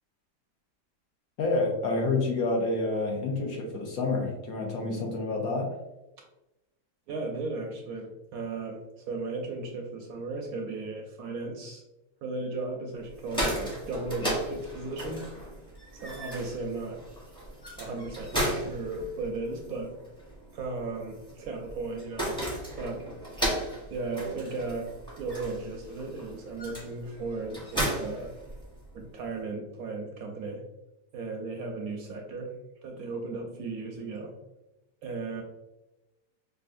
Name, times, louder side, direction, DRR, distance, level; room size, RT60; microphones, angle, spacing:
voice 1, 1.4-5.8, left 3 dB, 65° left, 1 dB, 1.0 m, -28 dB
voice 2, 7.1-11.8 12.2-15.4 16.0-17.0 17.8-19.9 20.5-22.4 22.8-23.1 23.9-28.3 28.9-30.7 31.1-32.6 32.8-34.4 35.0-35.4, right 3 dB, 70° right, 2 dB, 0.9 m, -36 dB
sound 1, 13.1-29.0, right 1 dB, 5° left, 0.7 m, -35 dB
4.8 x 2.5 x 2.5 m, 0.98 s
omnidirectional pair, 1.8 m